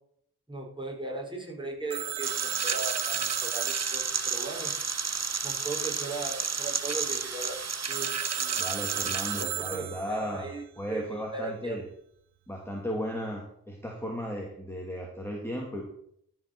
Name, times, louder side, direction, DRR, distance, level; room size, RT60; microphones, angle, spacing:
voice 1, 0.5-4.7 5.4-7.6 7.9-8.1 8.4-9.1 9.4-10.6 10.9-11.8, right 3 dB, 15° right, -2 dB, 5.0 m, -38 dB
Telephone, 1.9-5.5 7.9-10.4, right 12 dB, 85° right, 0.5 m, -36 dB
sound 1, 2.2-9.4, right 5 dB, 45° right, 1.1 m, -32 dB
voice 2, 8.6-11.8 12.5-15.8, equal, 5° left, 0 dB, 2.4 m, -35 dB
13.0 x 5.6 x 6.0 m, 0.69 s
cardioid pair, 40°, 37 cm